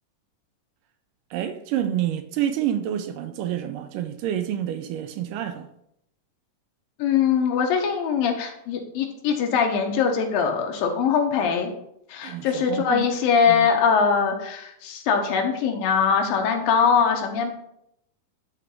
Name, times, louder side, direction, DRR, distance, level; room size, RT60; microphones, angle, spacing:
voice 1, 1.3-5.7 12.2-13.1 13.5-13.7, right 10 dB, 80° right, 2.1 m, -28 dB
voice 2, 7.0-11.7 12.1-17.5, left 6 dB, 85° left, 2.8 m, -22 dB
10.5 x 3.8 x 4.5 m
omnidirectional pair, 4.0 m